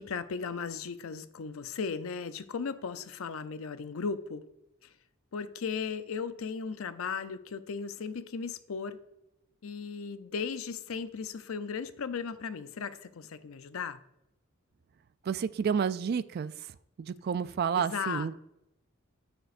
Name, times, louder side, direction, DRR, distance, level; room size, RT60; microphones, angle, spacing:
voice 1, 0.0-4.5 4.8-4.9 5.3-9.0 9.6-14.0 17.8-18.3, left 5 dB, 85° left, 12 dB, 0.5 m, -36 dB
voice 2, 15.3-16.5 17.0-18.3, right 7 dB, 50° right, 15 dB, 0.3 m, -30 dB
9.4 x 6.0 x 2.5 m, 0.87 s
head